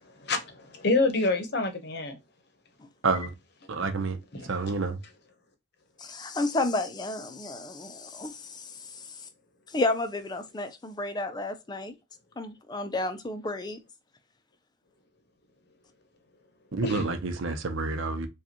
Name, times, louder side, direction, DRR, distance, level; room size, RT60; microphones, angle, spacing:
voice 1, 0.2-2.2 4.3-4.7 16.8-17.1, left 3 dB, 55° left, 0.8 m, -27 dB
voice 2, 3.7-4.2 4.5-5.0 16.7-18.3, right 3 dB, 90° right, 0.7 m, -28 dB
voice 3, 6.0-9.3 9.7-11.9 12.4-13.8, left 2 dB, 20° left, 0.4 m, -32 dB
4.9 x 2.3 x 2.8 m
head